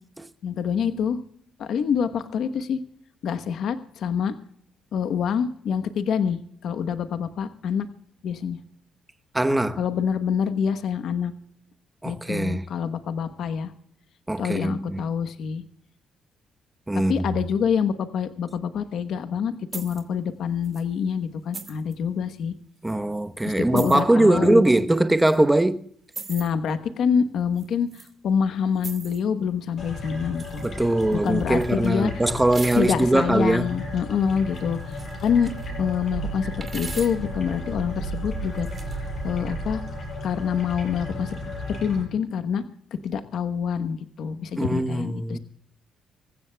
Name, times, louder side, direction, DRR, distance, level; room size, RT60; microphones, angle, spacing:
voice 1, 0.4-1.2 1.6-2.8 3.2-4.4 4.9-7.9 8.2-8.6 9.8-11.3 12.0-13.7 14.4-15.6 16.9-22.5 23.4-24.6 26.3-30.7 31.1-32.1 32.8-35.5 35.8-38.7 39.2-39.8 40.2-41.4 41.8-42.6 43.0-45.4, left 7 dB, 70° left, 1.1 m, -26 dB
voice 2, 9.3-9.8 12.0-12.7 14.3-15.0 16.9-17.3 22.8-25.9 30.6-33.7 44.6-45.4, right 1 dB, 10° right, 1.0 m, -21 dB
sound 1, 19.7-20.0 20.6-20.8 21.5-21.9 22.9-23.0 23.7-24.0 25.2-25.4 26.1-26.5 27.6-28.1 28.8-29.2 30.3-30.7 31.0-31.9 32.5-33.2 34.5-35.7 36.6-37.3 38.4-39.0, right 4 dB, 35° right, 2.3 m, -40 dB
sound 2, 29.8-42.0, left 1 dB, 55° left, 6.7 m, -34 dB
25.5 x 15.0 x 2.3 m
cardioid pair, 90°, 0 cm